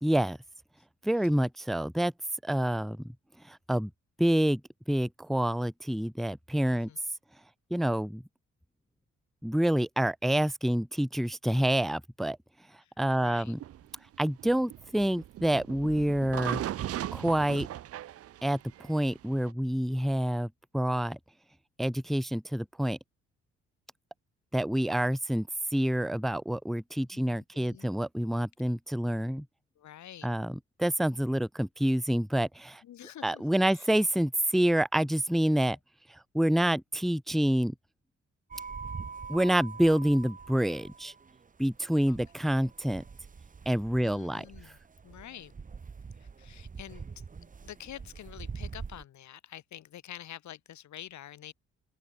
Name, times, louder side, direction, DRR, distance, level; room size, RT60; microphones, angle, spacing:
voice 1, 0.0-0.4 1.0-2.1 2.4-3.1 3.5-3.9 4.2-4.6 4.9-6.9 7.7-8.2 9.4-12.4 13.0-13.6 14.2-16.6 17.1-17.7 18.4-21.2 21.8-23.0 24.5-29.5 30.2-32.8 33.2-35.8 36.1-37.7 39.3-41.1 41.6-43.0 43.7-44.5, right 1 dB, ahead, 0.4 m, -27 dB
voice 2, 6.7-7.0 12.8-13.5 27.1-27.9 29.8-30.3 32.8-33.5 33.7-33.9 35.6-35.8 42.1-42.5 44.0-44.8 45.0-45.5 46.2-47.1 47.4-51.5, left 11 dB, 70° left, 2.5 m, -48 dB
sound 1, 13.6-19.5, right 12 dB, 50° right, 0.6 m, -38 dB
sound 2, 38.5-49.0, right 5 dB, 25° right, 1.1 m, -44 dB
open air
cardioid pair, 90°, 30 cm